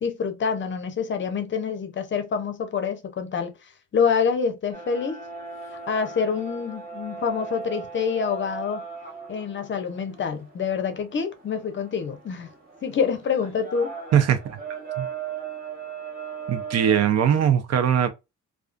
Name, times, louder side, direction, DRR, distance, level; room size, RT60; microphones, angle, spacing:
voice 1, 0.0-3.5 3.9-5.2 5.9-8.8 9.3-12.5 12.8-13.9, left 6 dB, 40° left, 0.6 m, -26 dB
sound 1, 4.7-17.1, right 6 dB, 30° right, 1.0 m, -38 dB
voice 2, 14.1-14.6 15.0-15.1 16.5-18.1, right 9 dB, 60° right, 0.5 m, -20 dB
2.3 x 2.3 x 2.4 m
cardioid pair, 90°, 30 cm